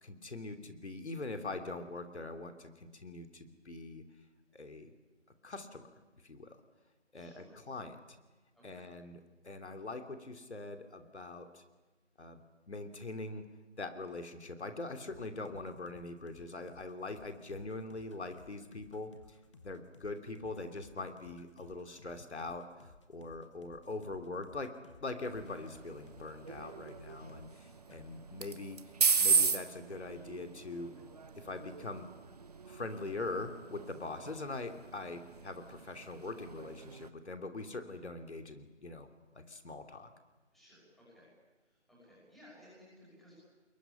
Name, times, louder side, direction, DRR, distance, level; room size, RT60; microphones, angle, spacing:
voice 1, 0.0-4.0 4.5-4.9 5.4-5.9 6.2-6.6 7.1-8.0 8.6-9.2 9.4-11.6 12.2-13.5 13.8-19.1 19.6-28.8 29.2-30.9 31.4-32.1 32.7-39.1 39.3-40.1, left 3 dB, 65° left, 8 dB, 3.0 m, -42 dB
voice 2, 7.1-7.6 8.5-8.9 25.5-25.8 27.0-27.1 27.6-27.7 40.5-41.3 41.6-43.4, equal, ahead, -7 dB, 5.7 m, -60 dB
sound 1, 15.0-27.6 27.9-28.1, left 4 dB, 25° left, 1.4 m, -58 dB
sound 2, 25.2-37.1, right 5 dB, 35° right, 1.2 m, -36 dB
26.5 x 22.0 x 9.9 m, 1.2 s
figure-of-eight pair, 160°, 36 cm